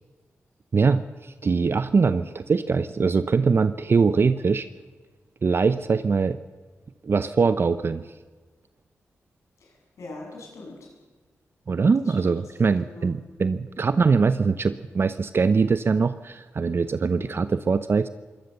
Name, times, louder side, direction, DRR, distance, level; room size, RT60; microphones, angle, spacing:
voice 1, 0.7-4.7 5.4-6.4 7.0-8.1 11.7-18.1, right 5 dB, 50° right, 12 dB, 0.7 m, -22 dB
voice 2, 9.6-10.9 12.0-13.1 17.1-17.4, left 2 dB, 80° left, -1 dB, 7.6 m, -43 dB
23.0 x 18.0 x 6.8 m, 1.3 s
cardioid pair, 65°, 5 cm